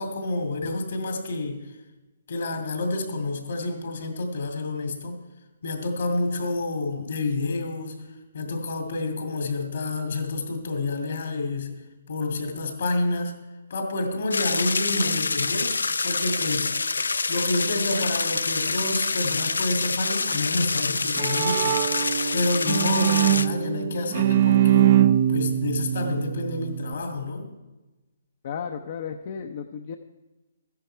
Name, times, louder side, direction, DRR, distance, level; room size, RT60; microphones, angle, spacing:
voice 1, 0.0-1.6 2.3-5.2 5.6-8.0 8.3-11.8 12.1-13.3 13.7-15.8 16.0-16.8 17.3-21.9 22.3-27.5, left 2 dB, 65° left, 5 dB, 2.4 m, -28 dB
sound 1, 14.3-23.5, left 4 dB, 85° left, 0.5 m, -26 dB
Bowed string instrument, 20.8-26.9, right 12 dB, 45° right, 0.5 m, -23 dB
voice 2, 28.4-30.0, left 7 dB, 50° left, 6 dB, 0.7 m, -34 dB
14.0 x 10.5 x 4.5 m, 1.1 s
hypercardioid pair, 145°, 0 cm